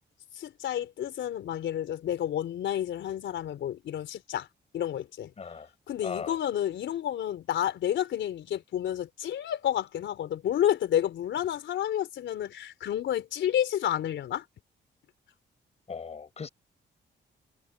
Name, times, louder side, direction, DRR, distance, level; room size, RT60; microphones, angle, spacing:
voice 1, 0.4-4.5 4.7-5.3 5.9-14.4, left 11 dB, 80° left, 4.0 m, -30 dB
voice 2, 5.4-5.7 6.0-6.4 15.9-16.5, left 5 dB, 35° left, 5.6 m, -38 dB
wide cardioid pair, 160°, 19 cm